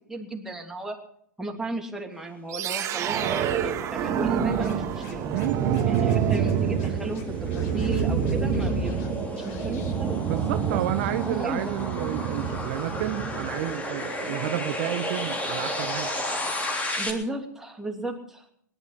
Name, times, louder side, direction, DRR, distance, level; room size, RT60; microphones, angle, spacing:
voice 1, 0.1-1.0 1.4-5.3 5.8-10.2 10.5-10.8 11.0-11.7 17.0-18.5, right 2 dB, 5° right, 1 dB, 2.8 m, -35 dB
sound 1, 2.5-13.6, right 7 dB, 30° right, 1.7 m, -27 dB
sound 2, 3.9-17.1, left 1 dB, 15° left, 3.1 m, -34 dB
Scratching (performance technique), 4.6-5.5 5.7-6.5 6.8-6.9 7.1-9.1 9.4-9.9, left 5 dB, 50° left, 4.6 m, -48 dB
voice 2, 5.3-6.1 10.3-16.1, right 14 dB, 50° right, 10 dB, 0.9 m, -31 dB
19.5 x 11.5 x 5.7 m, 0.66 s
hypercardioid pair, 110°, 10 cm